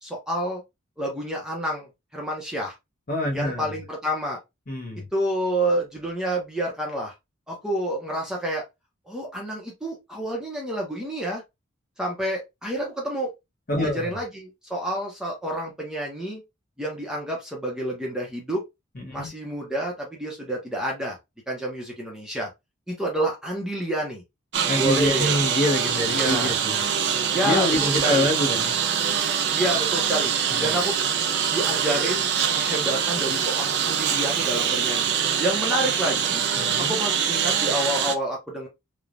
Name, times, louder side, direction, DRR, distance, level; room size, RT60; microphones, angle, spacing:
voice 1, 0.0-0.6 1.0-2.7 3.3-4.4 5.1-7.1 7.5-8.6 9.1-11.4 12.0-13.3 13.8-16.4 16.8-18.6 19.1-21.2 21.5-22.5 22.9-24.2 24.8-25.3 26.1-26.6 27.3-28.3 29.5-30.3 30.6-31.0 31.5-32.3 32.6-35.1 35.4-36.4 36.8-38.7, right 1 dB, 5° right, 0.6 m, -28 dB
voice 2, 3.1-3.7 4.7-5.1 13.7-14.1 19.0-19.3 24.7-26.8 27.4-28.8 30.5-30.7 36.6-36.9, left 1 dB, 40° left, 0.7 m, -26 dB
Engine, 24.5-38.2, right 8 dB, 55° right, 0.4 m, -24 dB
3.1 x 2.1 x 2.4 m
head